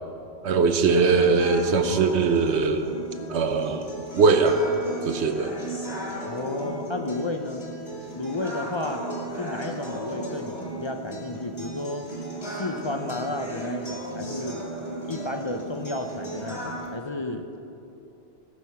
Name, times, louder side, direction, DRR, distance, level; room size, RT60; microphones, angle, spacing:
voice 1, 0.4-2.9 3.3-3.9 4.2-4.6 5.0-5.5, right 4 dB, 70° right, 8 dB, 1.0 m, -21 dB
sound 1, 0.9-16.9, right 1 dB, 60° left, 2.9 m, -35 dB
voice 2, 6.3-7.6 8.2-9.0 9.4-12.1 12.6-14.7 15.0-17.6, left 2 dB, 40° left, 5 dB, 0.4 m, -32 dB
17.0 x 6.4 x 5.6 m, 2.8 s
omnidirectional pair, 1.2 m